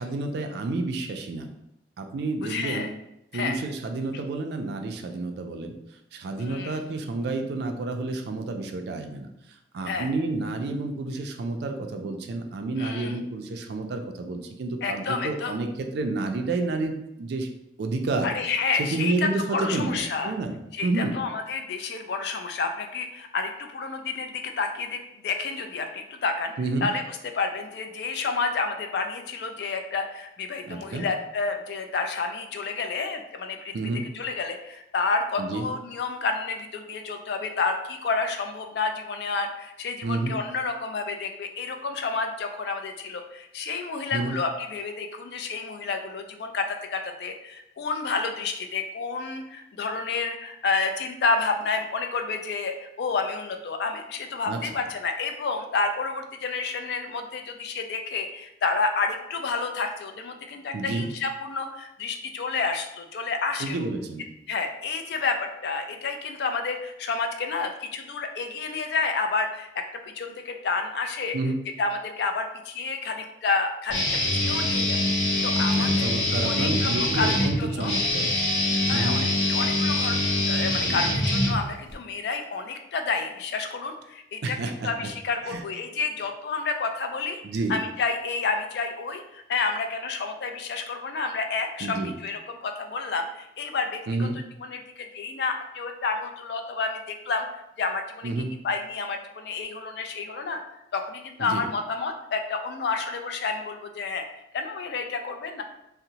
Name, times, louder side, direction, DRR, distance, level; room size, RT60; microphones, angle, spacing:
voice 1, 0.0-1.5 2.0-2.9 3.3-5.7 6.1-17.5 17.8-18.3 18.8-21.2 26.6-26.9 30.7-31.1 33.7-34.1 35.4-35.7 40.0-40.3 44.1-44.4 54.5-54.8 60.7-61.1 63.6-64.3 71.3-71.6 75.7-78.3 78.9-79.2 84.4-85.1 85.4-85.6 87.4-87.8 91.8-92.1 94.1-94.4 98.2-98.5 101.4-101.6, right 3 dB, 60° right, 5 dB, 0.3 m, -30 dB
voice 2, 2.4-2.9 3.3-3.6 6.4-6.8 9.9-10.1 12.8-13.2 14.8-15.5 18.2-20.3 20.7-26.5 26.8-27.0 27.3-33.7 34.1-63.8 64.5-71.4 71.8-75.0 75.4-76.1 76.5-77.9 78.9-84.6 84.8-87.4 87.7-94.3 94.6-98.3 98.6-100.6 100.9-104.2 104.5-105.6, left 4 dB, 60° left, 5 dB, 0.3 m, -30 dB
Guitar, 73.9-81.9, left 1 dB, 75° left, 0.7 m, -24 dB
2.7 x 2.0 x 2.8 m, 0.83 s
head